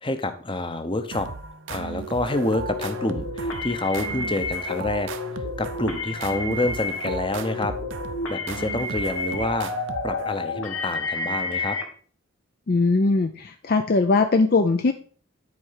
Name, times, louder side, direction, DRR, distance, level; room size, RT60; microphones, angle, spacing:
voice 1, 0.0-1.3 1.7-5.1 5.6-7.7 8.3-9.7 10.0-11.8, left 2 dB, 25° left, 9 dB, 0.8 m, -27 dB
sound 1, 1.1-10.6, right 5 dB, 65° right, 0.7 m, -36 dB
sound 2, 2.3-11.8, left 3 dB, 85° left, 1.9 m, -31 dB
voice 2, 12.7-14.9, left 3 dB, 45° left, 8 dB, 0.5 m, -20 dB
9.6 x 4.5 x 5.6 m, 0.43 s
head